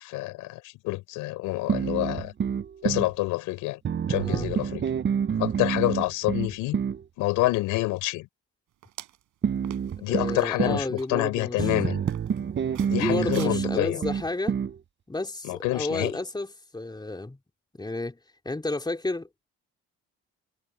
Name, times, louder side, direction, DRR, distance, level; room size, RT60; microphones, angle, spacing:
voice 1, 0.0-2.3 2.8-3.8 4.1-4.8 5.4-6.8 7.2-8.3 10.0-12.0 12.9-14.0 15.4-16.2, left 19 dB, 85° left, 5.4 m, -27 dB
sound 1, 1.7-3.1 3.8-7.0 9.4-10.9 11.6-14.8, right 7 dB, 35° right, 0.8 m, -28 dB
sound 2, 8.8-9.2 9.6-9.9 10.4-11.1 11.6-11.7 12.1-12.4 12.7-13.5, right 14 dB, 75° right, 4.8 m, -43 dB
voice 2, 10.1-11.7 12.4-12.5 12.8-14.6 15.1-17.4 17.7-18.2 18.5-19.5, left 2 dB, 15° left, 3.4 m, -31 dB
supercardioid pair, 75°, 30 cm